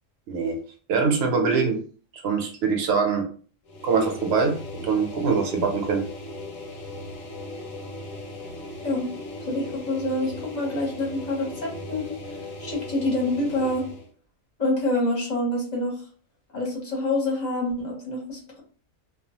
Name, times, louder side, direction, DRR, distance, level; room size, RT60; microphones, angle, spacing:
voice 1, 0.3-0.6 0.9-1.8 2.1-3.3 3.8-6.0, right 5 dB, 65° right, 3 dB, 0.7 m, -23 dB
sound 1, 3.6-14.1, left 2 dB, 90° left, 1.0 m, -38 dB
voice 2, 9.4-13.8 14.6-15.9 16.5-18.6, left 1 dB, 35° left, -2 dB, 0.9 m, -27 dB
2.3 x 2.2 x 2.7 m, 0.42 s
omnidirectional pair, 1.3 m